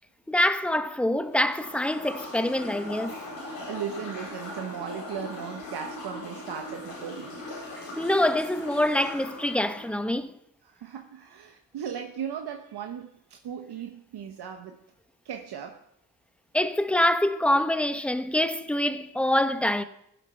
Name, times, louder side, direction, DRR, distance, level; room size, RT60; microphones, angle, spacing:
voice 1, 0.3-3.2 8.0-10.3 16.5-19.8, left 1 dB, 5° left, 1.1 m, -25 dB
sound 1, 1.3-9.9, left 1 dB, 90° left, 4.1 m, -39 dB
voice 2, 3.2-7.4 10.6-14.8 15.2-15.8, right 8 dB, 70° right, 1.1 m, -37 dB
15.5 x 7.6 x 5.7 m
supercardioid pair, 45°, 41 cm